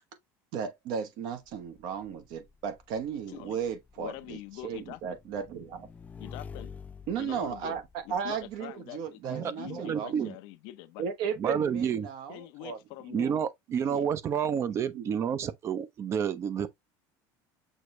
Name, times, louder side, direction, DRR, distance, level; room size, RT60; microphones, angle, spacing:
voice 1, 0.5-5.9 7.1-7.8 8.1-10.3 11.0-12.8 13.1-13.4 13.8-14.0 14.7-15.1, right 7 dB, 65° right, 1.1 m, -35 dB
Motorcycle / Engine, 1.5-8.6, left 6 dB, 20° left, 0.4 m, -49 dB
voice 2, 3.3-3.6 4.0-5.0 6.2-6.7 7.2-7.8 8.0-11.0 12.3-13.3, left 16 dB, 70° left, 0.6 m, -44 dB
voice 3, 9.2-10.3 11.4-12.1 13.1-16.7, right 7 dB, 35° right, 0.6 m, -30 dB
6.4 x 2.5 x 3.1 m
cardioid pair, 145°, 8 cm